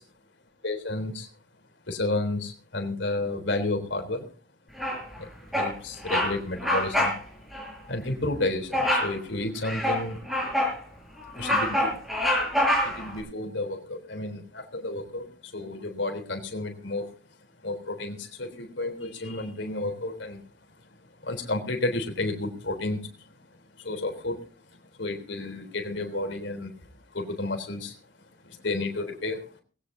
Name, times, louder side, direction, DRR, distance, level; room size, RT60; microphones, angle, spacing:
voice 1, 0.6-1.3 1.9-4.3 5.2-7.1 7.9-10.2 11.3-11.9 12.8-17.1 17.6-20.4 21.2-23.3 23.8-24.5 25.0-26.7 27.1-28.0 28.4-29.5, left 2 dB, 70° left, 4 dB, 3.6 m, -31 dB
Bird vocalization bird call bird song, 4.8-5.2 5.5-5.8 6.0-6.3 6.6-7.2 7.5-7.7 8.7-9.1 9.6-10.8 11.2-13.1, left 1 dB, ahead, 6.1 m, -25 dB
20.0 x 17.0 x 2.8 m, 0.37 s
head